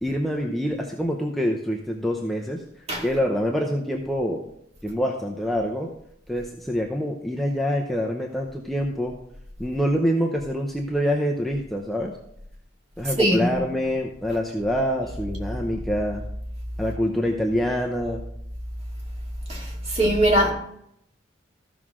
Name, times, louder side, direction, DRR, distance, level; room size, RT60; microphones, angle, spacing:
voice 1, 0.0-2.6 3.0-4.4 4.8-5.9 6.3-9.1 9.6-12.1 13.0-16.2 16.8-18.2, equal, ahead, 0.7 m, -25 dB
voice 2, 13.2-13.6 19.5-20.5, right 1 dB, 35° right, 2.3 m, -21 dB
14.5 x 6.0 x 3.7 m
head